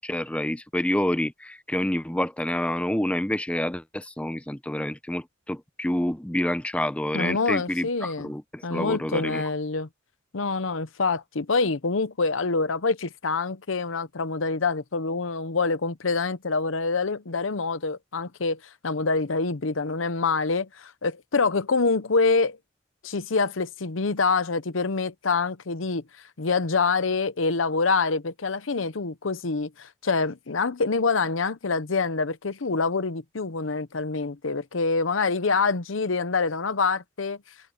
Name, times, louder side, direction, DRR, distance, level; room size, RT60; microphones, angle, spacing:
voice 1, 0.0-9.4, left 1 dB, 5° left, 0.7 m, -28 dB
voice 2, 7.1-8.3 8.6-9.9 10.3-22.6 23.0-37.4, left 4 dB, 90° left, 0.9 m, -26 dB
head